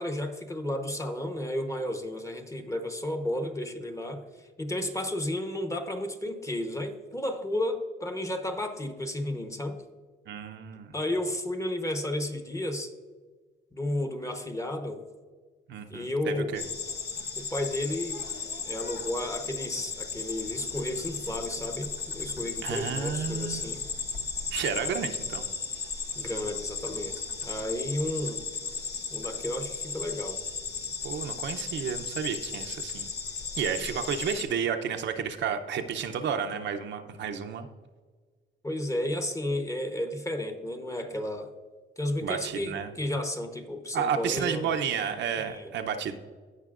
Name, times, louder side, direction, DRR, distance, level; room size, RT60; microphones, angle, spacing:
voice 1, 0.0-9.8 10.9-12.9 13.7-15.0 15.9-16.5 17.4-18.3 18.6-23.8 24.7-25.0 26.1-28.4 29.1-30.4 38.6-41.5 42.0-44.7 45.4-45.7, left 1 dB, 15° left, 6 dB, 1.0 m, -32 dB
voice 2, 10.3-10.9 15.7-16.6 22.6-23.6 24.5-25.4 31.0-33.1 33.6-37.7 42.2-42.9 43.9-46.2, right 7 dB, 65° right, 6 dB, 0.7 m, -31 dB
sound 1, 16.5-34.4, left 5 dB, 55° left, 0.9 m, -36 dB
16.0 x 5.7 x 2.5 m, 1.4 s
cardioid pair, 90°, 20 cm